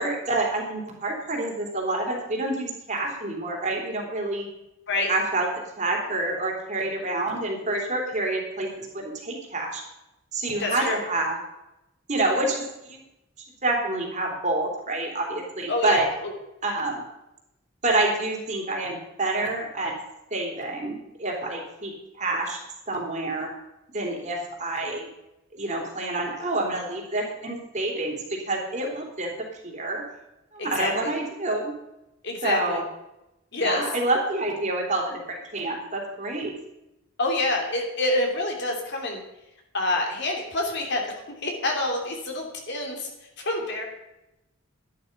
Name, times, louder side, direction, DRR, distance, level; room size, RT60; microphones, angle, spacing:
voice 1, 0.0-4.5 5.1-5.5 5.8-9.8 10.3-11.4 12.1-13.0 13.6-16.1 16.6-17.0 17.8-19.9 20.3-22.6 22.9-23.5 23.9-25.1 25.5-29.3 29.6-30.0 30.5-31.7 32.4-32.8 33.6-36.5, right 2 dB, 35° right, 0 dB, 3.4 m, -28 dB
voice 2, 10.6-11.0 15.7-16.3 30.6-31.1 32.2-32.8 33.5-33.8 37.2-39.2 39.7-43.1 43.4-43.8, left 2 dB, 60° left, 1 dB, 3.1 m, -27 dB
12.0 x 11.0 x 5.4 m, 0.89 s
head